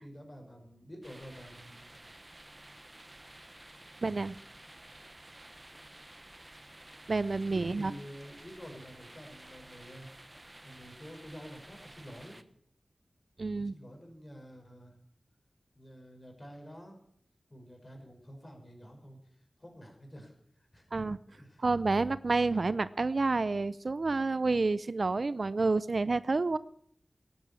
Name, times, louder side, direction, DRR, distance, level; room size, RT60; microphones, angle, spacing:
voice 1, 0.0-2.0 3.9-4.3 7.4-10.1 10.6-12.4 13.6-15.0 15.7-17.0 17.5-21.7, equal, 35° left, 3 dB, 5.8 m, -49 dB
sound 1, 1.0-12.4, right 1 dB, 25° right, 1.1 m, -52 dB
voice 2, 4.0-4.4 7.1-7.9 13.4-13.7 20.9-21.2 21.6-26.6, right 3 dB, 65° right, 17 dB, 0.6 m, -29 dB
15.5 x 10.5 x 8.6 m, 0.65 s
wide cardioid pair, 50°, 0 cm